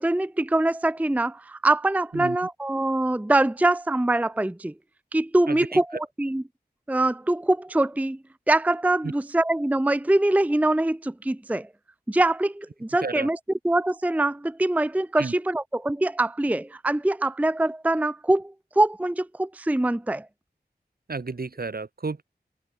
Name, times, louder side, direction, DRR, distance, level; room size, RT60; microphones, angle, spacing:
voice 1, 0.0-4.7 5.1-6.4 6.9-8.2 8.5-11.7 12.1-13.4 13.6-20.3, right 2 dB, 10° right, 0.5 m, -23 dB
voice 2, 5.5-5.8 13.0-13.3 15.2-15.3 21.1-22.2, right 4 dB, 60° right, 2.0 m, -32 dB
wide cardioid pair, 70°, 17 cm